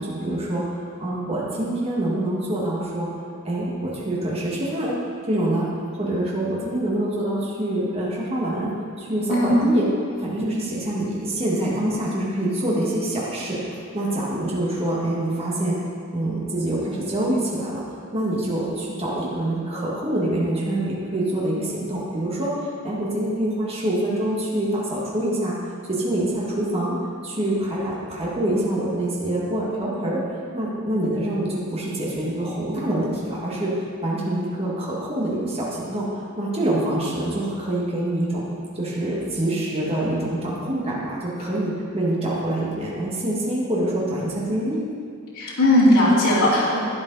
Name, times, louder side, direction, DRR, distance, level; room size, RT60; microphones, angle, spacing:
voice 1, 0.0-3.1 3.4-4.9 5.3-9.9 10.2-15.8 16.1-17.8 18.1-25.5 25.9-27.0 27.2-30.2 30.5-36.1 36.4-38.4 38.8-44.8, right 1 dB, 30° right, -6 dB, 1.8 m, -25 dB
voice 2, 9.3-9.6 45.3-46.8, left 1 dB, 80° left, -8 dB, 2.7 m, -17 dB
11.5 x 9.6 x 4.1 m, 2.3 s
head